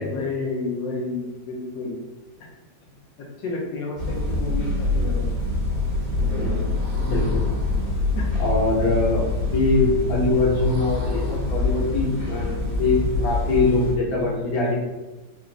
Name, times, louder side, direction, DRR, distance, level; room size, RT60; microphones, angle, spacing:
voice 1, 0.0-2.0 3.2-5.3 8.1-8.3, left 3 dB, 85° left, -2 dB, 1.4 m, -30 dB
sound 1, 4.0-14.0, left 2 dB, 70° right, 1.5 m, -25 dB
voice 2, 7.0-7.4 8.4-14.7, left 3 dB, 60° left, -3 dB, 1.2 m, -23 dB
4.0 x 2.5 x 3.1 m, 1.2 s
omnidirectional pair, 2.0 m